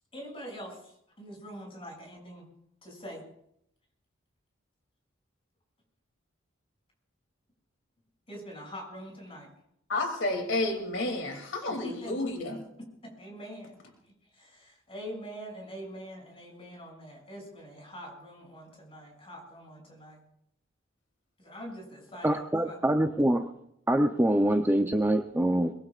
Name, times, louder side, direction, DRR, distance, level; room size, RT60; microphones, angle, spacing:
voice 1, 0.1-2.5 2.8-3.2 8.3-9.5 11.7-12.6 13.0-13.8 14.3-20.2 21.4-22.8, equal, 30° left, -1 dB, 7.1 m, -44 dB
voice 2, 9.9-12.6, left 2 dB, 75° left, 3 dB, 3.0 m, -31 dB
voice 3, 22.2-23.5 23.9-25.7, right 1 dB, 10° right, 4 dB, 0.7 m, -25 dB
22.5 x 22.5 x 2.5 m, 0.74 s
head